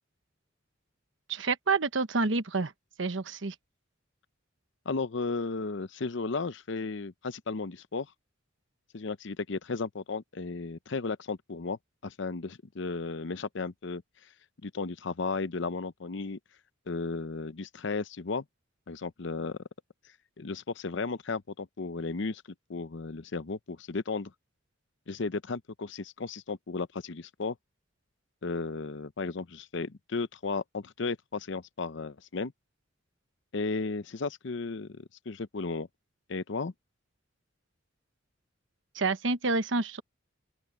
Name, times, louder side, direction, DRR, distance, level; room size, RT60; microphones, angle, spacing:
voice 1, 1.3-2.7 3.0-3.5 38.9-40.0, right 3 dB, 70° right, 1.1 m, -28 dB
voice 2, 4.9-8.1 8.9-14.0 14.6-16.4 16.9-18.4 18.9-19.6 20.4-22.4 22.7-24.3 25.1-27.6 28.4-32.5 33.5-35.9 36.3-36.7, left 4 dB, 65° left, 0.7 m, -34 dB
open air
head